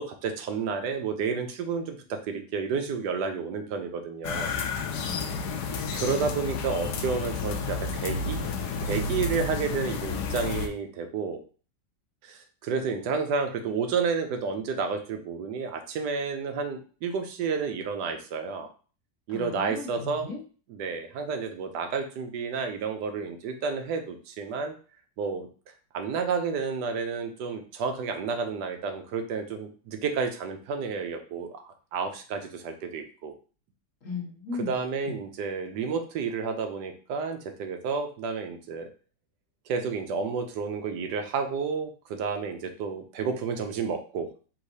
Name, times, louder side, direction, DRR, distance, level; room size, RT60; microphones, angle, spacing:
voice 1, 0.0-4.5 5.9-8.4 8.8-11.4 12.2-18.7 19.3-20.3 20.7-24.7 25.2-25.5 25.9-33.3 34.7-38.9 39.7-44.3, right 5 dB, 75° right, 6 dB, 1.2 m, -31 dB
sound 1, 4.2-10.7, left 4 dB, 75° left, 1.2 m, -31 dB
voice 2, 19.3-20.4 34.0-34.7 35.1-35.2, left 4 dB, 50° left, -2 dB, 1.4 m, -37 dB
4.7 x 3.6 x 2.7 m, 0.39 s
omnidirectional pair, 1.9 m